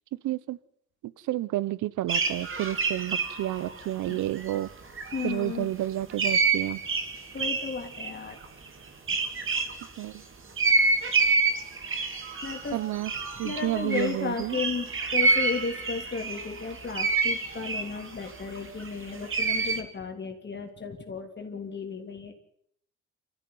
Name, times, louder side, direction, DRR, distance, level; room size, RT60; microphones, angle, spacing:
voice 1, 0.2-0.6 1.3-4.7 5.2-6.8 10.0-10.2 12.7-13.1 13.4-14.6, right 14 dB, 80° right, 1.0 m, -30 dB
sound 1, 2.1-4.7 5.0-5.4 6.1-9.9 10.6-19.8, right 4 dB, 45° right, 2.9 m, -28 dB
voice 2, 5.1-5.7 7.3-8.4 9.1-9.2 12.4-12.8 13.3-22.3, left 5 dB, 35° left, 3.4 m, -34 dB
27.0 x 14.5 x 9.6 m
cardioid pair, 90°, 30 cm